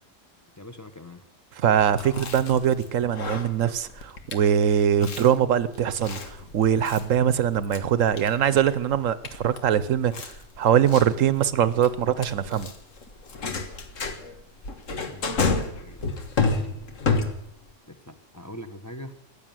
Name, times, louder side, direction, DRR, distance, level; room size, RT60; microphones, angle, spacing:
voice 1, 0.6-1.2 15.1-16.0 17.9-19.1, left 1 dB, 15° left, 5 dB, 1.0 m, -42 dB
voice 2, 1.6-10.3 10.6-12.7, right 9 dB, 80° right, 15 dB, 1.2 m, -22 dB
Chewing mastication, 1.8-17.7, left 4 dB, 80° left, 1.8 m, -31 dB
15.0 x 10.0 x 9.0 m, 0.76 s
omnidirectional pair, 1.3 m